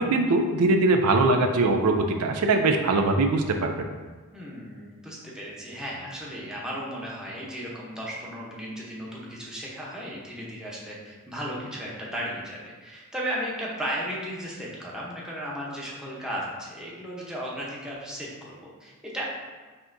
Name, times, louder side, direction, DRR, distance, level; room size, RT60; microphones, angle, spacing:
voice 1, 0.0-3.9, right 2 dB, 85° right, 5 dB, 0.4 m, -22 dB
voice 2, 4.3-19.2, equal, 5° right, -5 dB, 0.8 m, -35 dB
5.4 x 2.9 x 2.6 m, 1.3 s
head